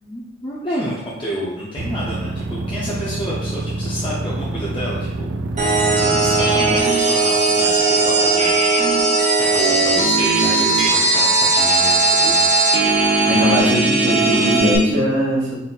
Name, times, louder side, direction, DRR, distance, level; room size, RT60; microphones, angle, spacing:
voice 1, 0.0-8.9 9.4-12.9, equal, 25° left, -7 dB, 0.5 m, -30 dB
sound 1, 1.8-6.8, right 2 dB, 90° right, 0.5 m, -26 dB
sound 2, 5.6-14.8, right 3 dB, 40° right, 0.8 m, -17 dB
voice 2, 13.3-15.5, left 1 dB, 75° right, -5 dB, 1.4 m, -19 dB
4.0 x 3.9 x 2.3 m, 0.94 s
head